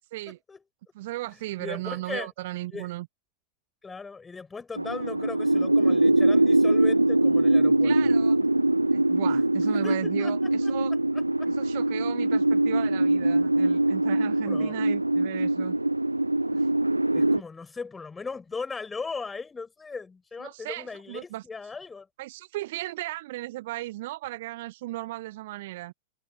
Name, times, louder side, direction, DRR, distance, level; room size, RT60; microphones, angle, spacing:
voice 1, 0.3-0.6 1.6-2.3 2.7-2.9 3.8-7.9 9.3-9.4 9.7-10.3 11.4-11.5 14.5-14.7 17.1-22.1, left 4 dB, 15° left, 7.2 m, -38 dB
voice 2, 0.9-3.1 7.8-8.4 8.9-10.9 11.5-15.8 16.5-16.7 20.4-21.4 22.2-25.9, right 17 dB, 55° right, 0.8 m, -36 dB
sound 1, 4.8-17.4, right 1 dB, 85° right, 0.3 m, -23 dB
figure-of-eight pair, 90°, 0 cm